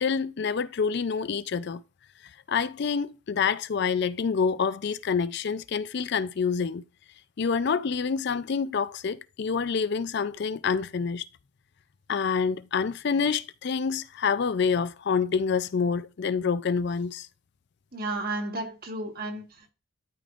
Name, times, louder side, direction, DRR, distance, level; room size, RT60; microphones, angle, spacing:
voice 1, 0.0-1.8 2.5-6.8 7.4-11.2 12.1-17.3, left 5 dB, 55° left, 0.4 m, -27 dB
voice 2, 17.9-19.7, right 2 dB, 45° right, 1.5 m, -33 dB
12.5 x 5.1 x 2.5 m
head